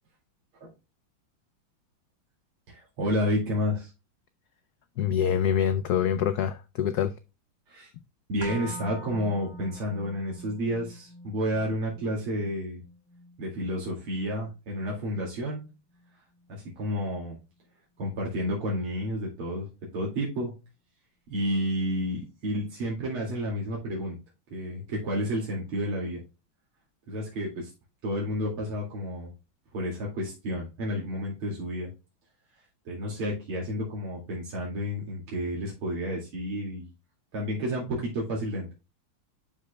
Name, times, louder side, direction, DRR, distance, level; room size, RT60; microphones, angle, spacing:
voice 1, 2.7-3.9 7.7-7.9 8.3-12.8 13.4-15.6 16.5-17.4 18.0-19.7 19.9-20.5 21.3-24.2 24.5-26.2 27.1-27.7 28.0-29.3 29.7-31.9 32.8-36.9 37.3-38.7, equal, 90° right, 3.2 m, -30 dB
voice 2, 5.0-7.1, left 9 dB, 75° left, 0.9 m, -25 dB
sound 1, 8.4-16.5 16.8-16.9, left 1 dB, 10° left, 2.0 m, -46 dB
11.0 x 5.1 x 2.2 m
omnidirectional pair, 2.3 m